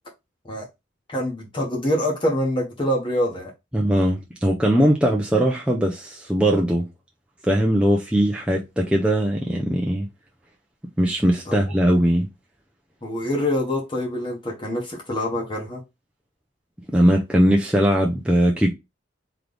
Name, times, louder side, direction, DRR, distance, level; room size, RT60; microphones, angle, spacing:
voice 1, 1.1-3.5 11.5-11.6 13.0-15.8, left 1 dB, 25° left, 1.1 m, -25 dB
voice 2, 3.7-6.9 7.5-10.1 11.0-12.3 16.9-18.7, equal, 5° right, 0.5 m, -20 dB
3.9 x 3.2 x 3.3 m
head